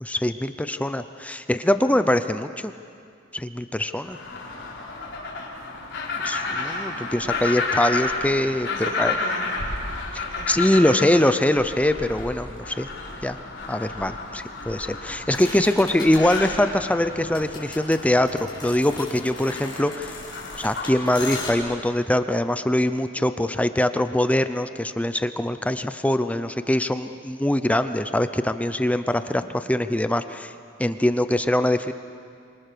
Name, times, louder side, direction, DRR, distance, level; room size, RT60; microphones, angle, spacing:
voice 1, 0.0-2.7 3.3-4.2 6.2-8.7 9.0-9.2 10.5-12.9 13.2-13.4 13.7-20.1 20.6-29.4 29.7-30.5 30.8-31.9, left 1 dB, 5° left, 10 dB, 0.6 m, -23 dB
sound 1, 4.0-21.8, left 3 dB, 65° left, 5.1 m, -32 dB
voice 2, 5.9-7.6 8.7-9.7 10.3-10.5 11.0-11.1 15.4-16.0 29.2-29.5, right 1 dB, 80° right, 2 dB, 4.5 m, -41 dB
sound 2, 15.3-16.4 17.3-21.5, left 4 dB, 25° left, 6.2 m, -37 dB
27.5 x 25.0 x 6.9 m, 2.3 s
head